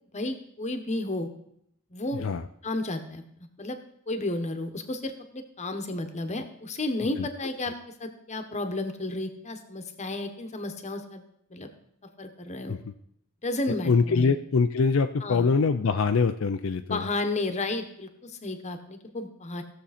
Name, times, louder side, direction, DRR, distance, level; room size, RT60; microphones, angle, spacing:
voice 1, 0.1-1.3 1.9-2.3 2.6-3.8 4.1-11.2 11.5-11.7 12.2-12.8 13.4-14.3 15.2-15.5 16.9-19.6, left 2 dB, 35° left, 7 dB, 1.1 m, -32 dB
voice 2, 13.9-17.0, left 4 dB, 70° left, 7 dB, 0.5 m, -23 dB
16.0 x 7.0 x 4.2 m, 0.74 s
head